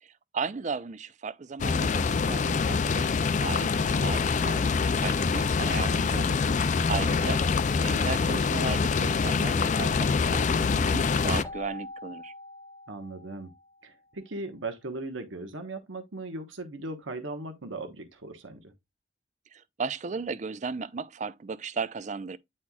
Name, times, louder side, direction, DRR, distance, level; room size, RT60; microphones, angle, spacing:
voice 1, 0.0-3.1 3.4-6.4 6.9-7.4 7.8-12.3 19.5-22.4, right 5 dB, 40° right, 0.4 m, -35 dB
sound 1, 1.6-11.4, left 5 dB, 40° left, 0.4 m, -25 dB
voice 2, 6.9-7.3 12.9-13.5 13.8-18.7, right 2 dB, 90° right, 1.1 m, -38 dB
Keyboard (musical), 11.4-14.0, left 2 dB, 15° left, 0.8 m, -44 dB
9.6 x 4.3 x 2.3 m
head